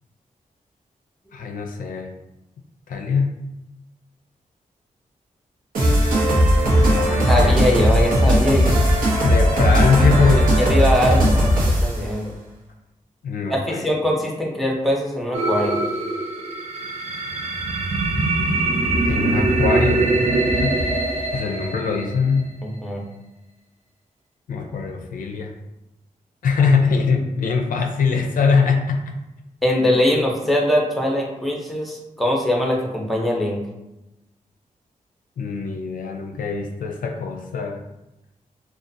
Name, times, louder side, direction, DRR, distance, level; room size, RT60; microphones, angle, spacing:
voice 1, 1.3-2.1 2.9-3.3 6.6-7.6 9.2-10.5 13.2-13.9 19.0-20.1 20.6-20.7 21.3-22.5 24.5-25.5 26.4-29.0 35.4-37.9, left 5 dB, 80° left, 2 dB, 0.4 m, -22 dB
sound 1, 5.7-12.0, equal, 80° right, 0.7 m, -17 dB
voice 2, 7.3-8.8 10.4-12.3 13.5-15.8 22.6-23.0 29.6-33.6, left 1 dB, ahead, -1 dB, 0.6 m, -22 dB
sound 2, 15.3-22.4, right 2 dB, 50° right, 0.5 m, -22 dB
2.5 x 2.2 x 2.5 m, 0.92 s
cardioid pair, 75°, 14 cm